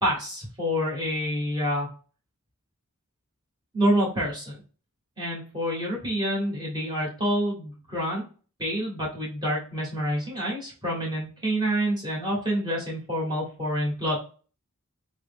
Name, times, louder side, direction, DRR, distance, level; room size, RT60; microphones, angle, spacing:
voice 1, 0.0-1.9 3.7-4.6 5.2-8.2 8.6-14.2, equal, 20° right, -4 dB, 1.1 m, -27 dB
4.9 x 2.0 x 3.4 m, 0.38 s
head